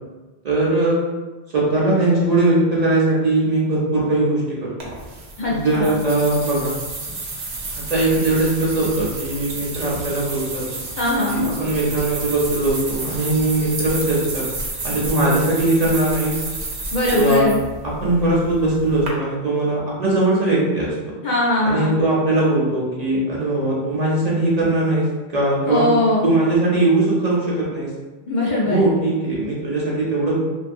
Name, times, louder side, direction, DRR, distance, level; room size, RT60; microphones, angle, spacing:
voice 1, 0.4-1.0 1.5-4.9 5.5-6.7 7.9-10.6 11.3-14.4 14.8-16.4 17.1-17.6 17.8-20.9 21.6-25.9 26.2-27.9 28.6-30.3, right 2 dB, 50° right, -6 dB, 0.6 m, -20 dB
sound 1, 4.8-19.1, right 3 dB, 85° right, 0.9 m, -31 dB
voice 2, 5.4-6.0 11.0-11.4 16.9-17.6 21.2-22.0 25.6-26.3 28.3-28.8, left 2 dB, 55° left, -5 dB, 0.6 m, -20 dB
2.6 x 2.4 x 2.5 m, 1.2 s
omnidirectional pair, 1.1 m